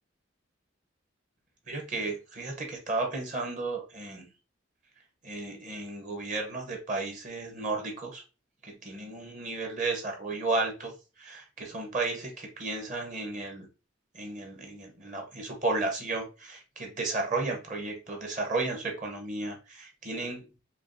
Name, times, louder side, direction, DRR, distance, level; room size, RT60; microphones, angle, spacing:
voice 1, 1.7-4.2 5.2-8.2 8.6-13.7 14.1-20.4, right 3 dB, 40° right, 0.9 m, -33 dB
5.7 x 2.3 x 2.6 m
head